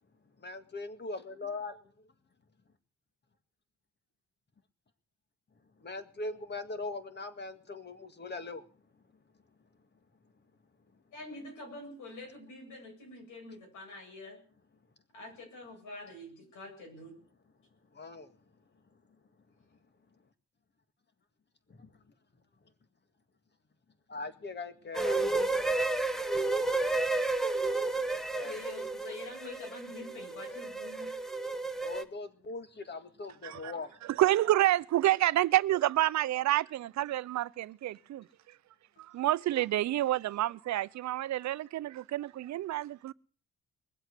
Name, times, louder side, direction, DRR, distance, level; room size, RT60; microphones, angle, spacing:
voice 1, 0.4-1.8 5.8-8.7 17.9-18.4 21.7-21.9 24.1-25.5 27.9-28.7 31.8-33.9, left 3 dB, 35° left, 2.0 m, -41 dB
voice 2, 11.1-14.4 15.1-17.2 28.4-31.2, left 2 dB, 80° left, 8.0 m, -46 dB
sound 1, 24.9-32.0, right 2 dB, ahead, 1.3 m, -31 dB
voice 3, 34.0-38.2 39.1-43.1, right 14 dB, 65° right, 0.6 m, -28 dB
20.5 x 8.0 x 8.2 m
cardioid pair, 90°, 30 cm